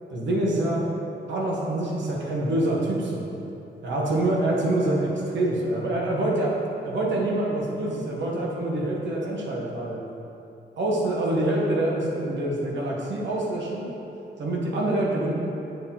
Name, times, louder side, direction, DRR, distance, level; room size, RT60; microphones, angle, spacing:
voice 1, 0.1-0.9 1.3-3.2 3.8-6.5 6.8-10.0 10.8-13.9 14.4-15.3, right 1 dB, 85° right, -3 dB, 1.1 m, -26 dB
7.6 x 4.6 x 3.7 m, 2.9 s
wide cardioid pair, 135°, 18 cm